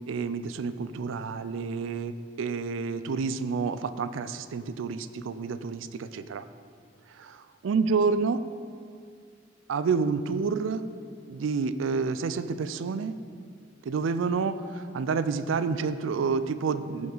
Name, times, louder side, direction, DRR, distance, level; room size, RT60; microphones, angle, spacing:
voice 1, 0.1-6.5 7.1-8.4 9.7-10.8 11.3-13.2 13.9-17.1, right 5 dB, 90° right, 12 dB, 0.4 m, -29 dB
14.0 x 4.8 x 3.9 m, 2.2 s
head